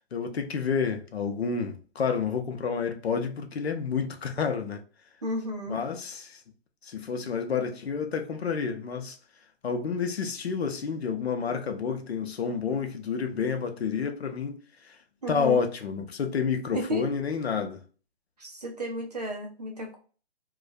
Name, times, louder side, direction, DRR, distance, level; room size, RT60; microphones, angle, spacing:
voice 1, 0.1-4.8 5.7-6.4 6.8-9.2 9.6-15.0 15.3-17.8, left 6 dB, 70° left, 0.6 m, -29 dB
voice 2, 5.2-5.8 15.2-15.6 16.7-17.1 18.4-20.0, equal, 40° right, 0.5 m, -32 dB
2.3 x 2.2 x 2.5 m
hypercardioid pair, 175°, 33 cm